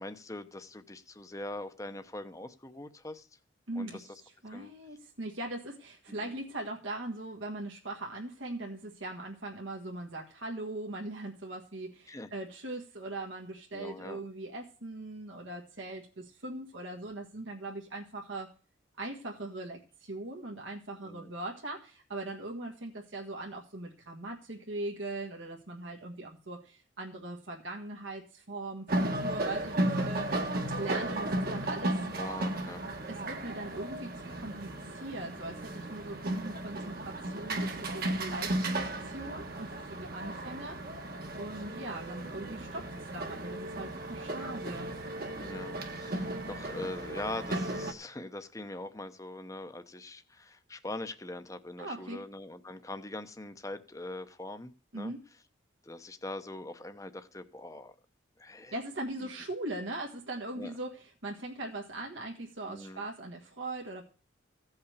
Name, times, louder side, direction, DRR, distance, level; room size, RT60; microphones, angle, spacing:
voice 1, 0.0-3.3 3.8-4.0 4.5-4.7 6.1-6.3 12.1-12.3 13.7-14.2 21.0-21.3 32.1-32.8 45.3-55.1 55.8-58.0 58.4-58.8 59.2-59.3 60.6-60.7 62.7-63.0, left 2 dB, 15° left, 9 dB, 0.8 m, -42 dB
voice 2, 3.7-18.5 19.0-30.5 30.8-32.0 33.1-41.1 41.4-44.9 51.8-52.2 54.9-55.2 58.7-64.0, right 2 dB, 75° right, -1 dB, 1.7 m, -40 dB
sound 1, 28.9-47.9, right 1 dB, 50° right, 1.4 m, -35 dB
15.5 x 5.7 x 6.7 m, 0.40 s
head